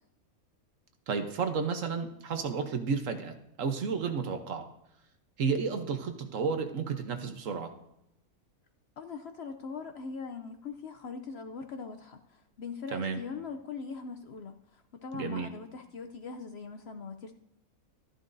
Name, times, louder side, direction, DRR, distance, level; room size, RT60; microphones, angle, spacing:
voice 1, 1.1-4.6 5.4-7.7 12.9-13.2 15.1-15.5, right 5 dB, 65° right, 7 dB, 1.3 m, -32 dB
voice 2, 9.0-17.3, left 5 dB, 60° left, 7 dB, 0.7 m, -41 dB
13.0 x 10.5 x 2.6 m, 0.83 s
omnidirectional pair, 1.5 m